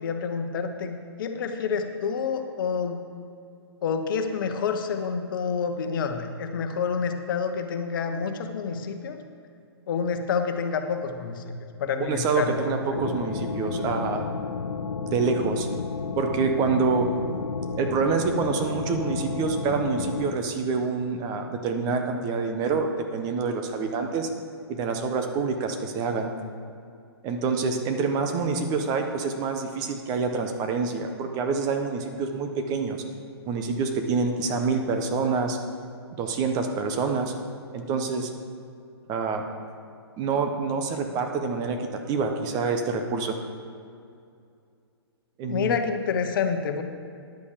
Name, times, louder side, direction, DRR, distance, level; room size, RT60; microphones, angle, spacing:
voice 1, 0.0-3.0 3.8-9.2 9.9-11.5 11.8-12.7 45.5-46.8, left 6 dB, 50° left, 6 dB, 1.2 m, -28 dB
voice 2, 12.0-14.3 15.0-15.7 16.2-17.1 17.8-24.3 24.7-26.3 27.2-33.0 33.5-35.6 36.2-37.3 37.7-38.3 39.1-39.4 40.2-43.4 45.4-45.8, right 4 dB, 30° right, 5 dB, 1.0 m, -27 dB
sound 1, 12.9-20.3, left 5 dB, 85° left, 0.8 m, -32 dB
10.5 x 8.4 x 5.1 m, 2.4 s
hypercardioid pair, 130°, 14 cm